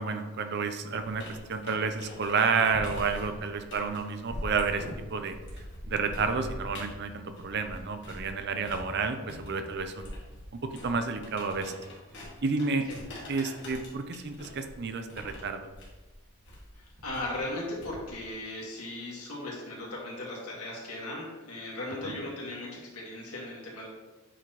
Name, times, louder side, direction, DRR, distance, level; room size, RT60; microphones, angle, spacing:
voice 1, 0.0-5.4 5.9-10.1 10.6-11.7 12.4-12.9 13.3-15.7 22.0-22.2, right 4 dB, 50° right, 8 dB, 0.6 m, -30 dB
sound 1, 0.9-8.3 8.6-18.3, left 1 dB, 55° left, 1.9 m, -43 dB
voice 2, 16.7-23.9, left 1 dB, 85° left, -3 dB, 2.1 m, -37 dB
8.7 x 4.8 x 3.0 m, 1.2 s
head